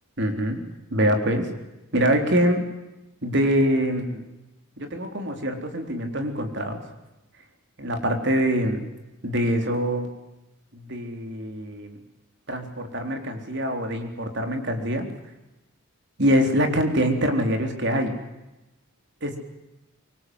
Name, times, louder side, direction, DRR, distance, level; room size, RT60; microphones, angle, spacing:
voice 1, 0.2-0.6 0.9-1.5 1.9-2.6 3.2-4.2 4.8-6.8 7.8-8.8 9.2-10.1 10.7-12.0 12.5-15.1 16.2-18.1 19.2-19.4, equal, 55° right, 5 dB, 3.8 m, -24 dB
25.5 x 24.0 x 7.9 m, 1.0 s
head